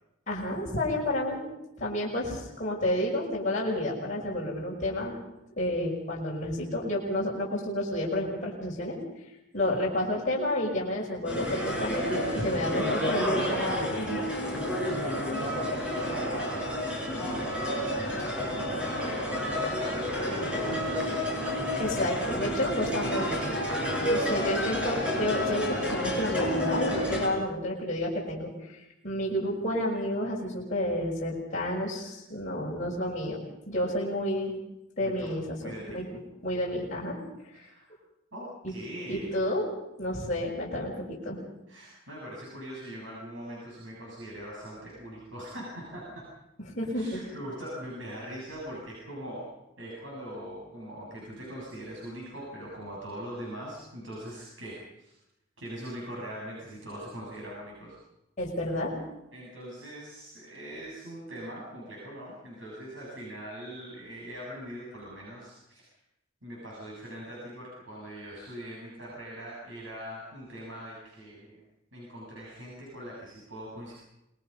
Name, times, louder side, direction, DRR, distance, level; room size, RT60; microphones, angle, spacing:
voice 1, 0.3-1.4 1.8-5.1 5.5-9.0 9.5-13.6 14.0-14.2 21.8-23.6 24.1-34.5 35.0-36.1 36.4-37.2 39.1-39.7 40.0-41.4 46.7-47.2 58.4-58.9, left 1 dB, 35° left, -4 dB, 5.8 m, -30 dB
sound 1, 11.2-27.3, equal, 5° right, 5.6 m, -30 dB
voice 2, 14.5-21.3 27.0-27.4 35.0-35.3 35.6-36.0 37.5-38.0 38.3-39.3 41.7-46.3 46.8-49.5 49.8-55.2 55.6-58.0 59.3-65.8 66.4-71.6 71.9-74.0, equal, 70° right, -4 dB, 7.6 m, -42 dB
27.0 x 21.0 x 5.6 m, 0.89 s
head